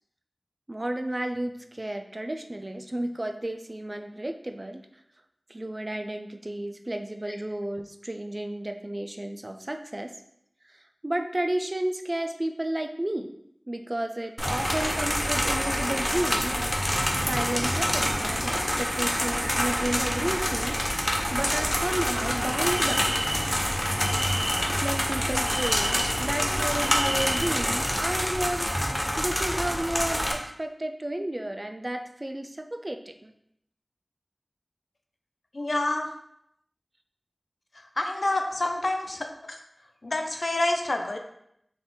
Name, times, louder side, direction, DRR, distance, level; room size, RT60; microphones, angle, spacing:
voice 1, 0.7-4.8 5.5-10.1 10.7-10.8 11.0-13.3 13.7-16.7 17.2-20.8 21.3-23.1 24.6-28.7 29.2-33.3, right 1 dB, 35° right, 6 dB, 0.3 m, -32 dB
sound 1, 14.4-28.3, equal, 35° left, 1.1 m, -36 dB
sound 2, 14.4-30.3, equal, 15° left, 0.5 m, -27 dB
sound 3, 22.4-27.9, equal, 15° right, 1.3 m, -34 dB
voice 2, 35.5-36.1 38.0-39.3 40.0-41.2, left 2 dB, 70° left, 4 dB, 0.4 m, -27 dB
3.8 x 2.5 x 3.6 m, 0.74 s
wide cardioid pair, 45°, 0 cm